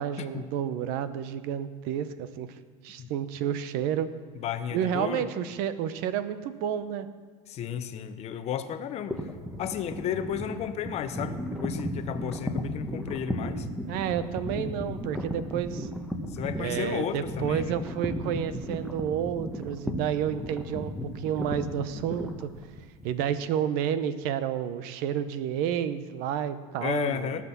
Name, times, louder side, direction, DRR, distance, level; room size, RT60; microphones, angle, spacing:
voice 1, 0.0-2.5 2.8-4.1 4.7-7.1 13.9-15.9 16.5-22.5 23.0-27.4, right 9 dB, 60° right, 13 dB, 0.8 m, -30 dB
voice 2, 4.3-5.2 7.5-9.2 9.6-13.7 16.3-17.8 26.8-27.4, left 9 dB, 40° left, 10 dB, 0.8 m, -33 dB
sound 1, 9.1-23.2, equal, ahead, 1.1 m, -35 dB
18.0 x 6.1 x 7.0 m, 1.5 s
supercardioid pair, 135°, 17 cm